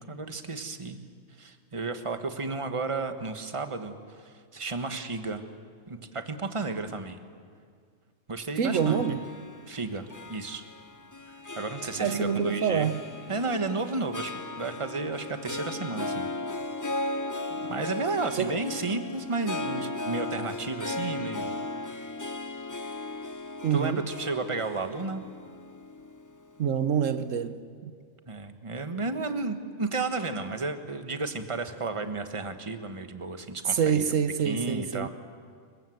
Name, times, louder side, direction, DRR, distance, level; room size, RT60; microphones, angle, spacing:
voice 1, 0.1-1.0 1.4-5.5 5.9-7.2 8.3-9.0 9.7-10.6 11.3-12.9 13.3-16.3 17.5-21.6 21.9-22.0 23.7-25.2 28.3-34.0 34.4-35.1, right 3 dB, 25° right, 1.4 m, -33 dB
voice 2, 8.6-9.2 12.0-13.0 18.4-18.6 23.6-24.0 26.6-27.9 33.7-35.1, right 7 dB, 75° right, 1.3 m, -26 dB
Harp, 8.7-27.1, left 2 dB, 15° left, 0.7 m, -37 dB
26.5 x 23.0 x 8.0 m
omnidirectional pair, 1.4 m